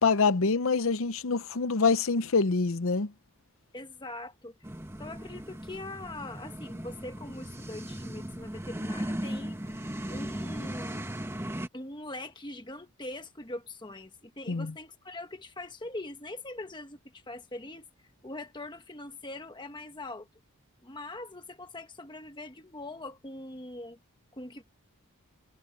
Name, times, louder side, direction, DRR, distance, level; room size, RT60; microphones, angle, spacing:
voice 1, 0.0-3.1 14.5-14.7, left 4 dB, 65° left, 0.8 m, -25 dB
voice 2, 3.7-4.6 5.0-9.6 10.1-11.1 11.7-17.9 18.2-20.3 20.8-24.0 24.3-24.6, left 2 dB, 20° left, 1.3 m, -42 dB
sound 1, 4.6-11.7, right 1 dB, 10° right, 1.4 m, -37 dB
head